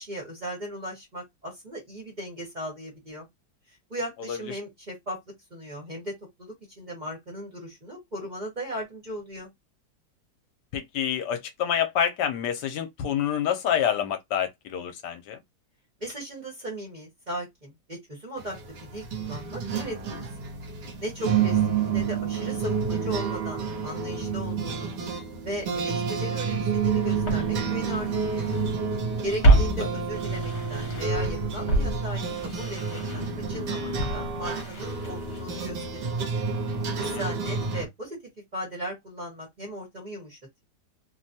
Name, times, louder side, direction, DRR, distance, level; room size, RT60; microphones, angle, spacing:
voice 1, 0.0-3.3 3.9-5.2 5.5-6.1 6.4-9.5 16.0-18.6 18.9-20.2 21.0-24.9 25.4-28.5 29.2-36.1 37.0-38.2 38.5-40.6, equal, 30° right, 1.1 m, -37 dB
voice 2, 10.7-15.4 29.4-29.6 37.0-37.2, left 9 dB, 75° left, 1.1 m, -27 dB
sound 1, 18.4-37.9, right 5 dB, 75° right, 1.4 m, -29 dB
Walk footsteps, 26.5-26.6 27.2-28.7 29.0-31.3 31.7-35.7 36.0-36.1, right 2 dB, 45° left, 1.2 m, -27 dB
3.1 x 2.2 x 2.7 m
omnidirectional pair, 1.9 m